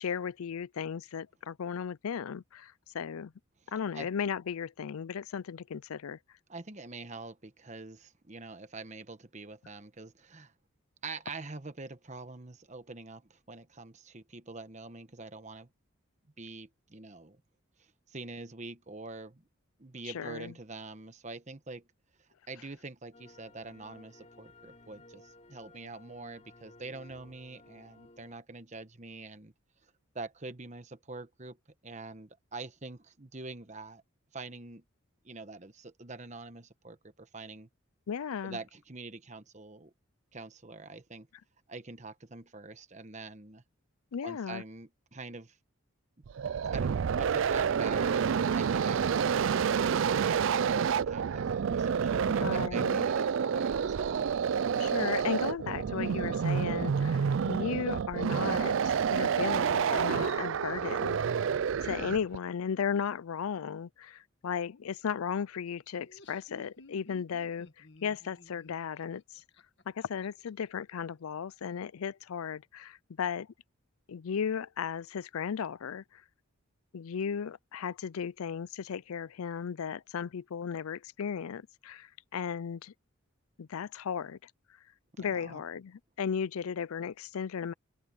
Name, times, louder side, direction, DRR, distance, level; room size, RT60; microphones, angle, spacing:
voice 1, 0.0-3.3 3.7-6.2 20.0-20.5 38.1-38.6 44.1-44.6 52.2-53.1 54.8-61.5 61.8-69.2 69.9-73.5 74.1-76.2 76.9-82.9 83.6-84.5 85.2-87.7, left 7 dB, 85° left, 0.4 m, -35 dB
voice 2, 6.5-10.5 11.0-15.7 16.4-17.4 17.8-19.4 19.8-21.8 22.5-29.5 29.8-31.6 31.8-34.0 34.3-34.8 35.2-37.7 38.4-39.9 40.3-41.3 41.7-43.6 44.2-45.6 46.7-54.3 85.1-85.6, right 3 dB, 35° right, 1.1 m, -45 dB
sound 1, 23.1-28.3, left 2 dB, 30° left, 3.4 m, -56 dB
sound 2, 46.3-62.4, right 7 dB, 65° right, 0.4 m, -29 dB
Laughter, 65.9-70.5, left 2 dB, 55° left, 1.7 m, -56 dB
head